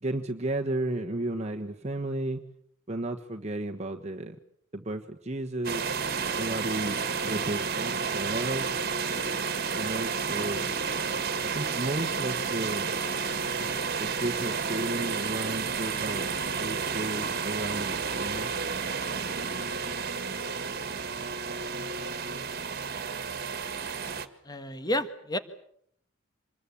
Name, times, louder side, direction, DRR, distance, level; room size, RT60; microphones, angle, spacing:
voice 1, 0.0-2.4 2.9-4.4 4.7-5.9 6.4-8.8 9.7-10.7 11.4-12.9 14.0-16.3 16.6-18.5, right 1 dB, 35° right, 3 dB, 1.3 m, -33 dB
sound 1, 5.6-24.3, right 5 dB, 50° right, 1.9 m, -31 dB
voice 2, 24.4-25.4, left 1 dB, 20° left, 11 dB, 1.6 m, -30 dB
26.5 x 21.5 x 8.5 m, 0.68 s
head